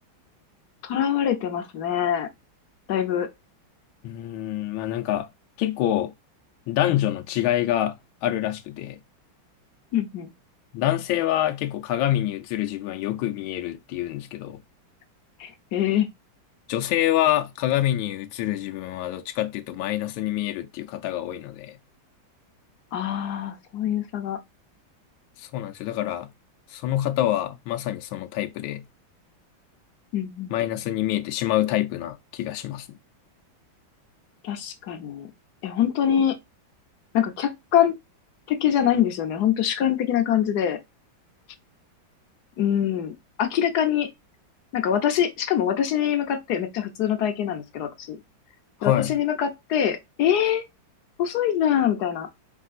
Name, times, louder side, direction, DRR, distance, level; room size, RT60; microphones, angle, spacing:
voice 1, 0.8-2.3 2.9-3.3 9.9-10.3 15.4-16.1 22.9-24.4 30.1-30.5 34.4-35.3 35.6-36.4 37.1-37.9 38.5-40.8 42.6-43.1 43.4-44.1 44.7-48.2 48.8-50.6 51.2-52.3, left 10 dB, 60° left, 1.2 m, -24 dB
voice 2, 4.0-5.3 5.6-6.1 6.7-9.0 10.7-14.6 16.7-21.8 25.4-26.3 26.7-28.8 30.5-32.9 48.8-49.2, left 13 dB, 85° left, 1.4 m, -26 dB
4.8 x 3.6 x 2.4 m
omnidirectional pair, 2.2 m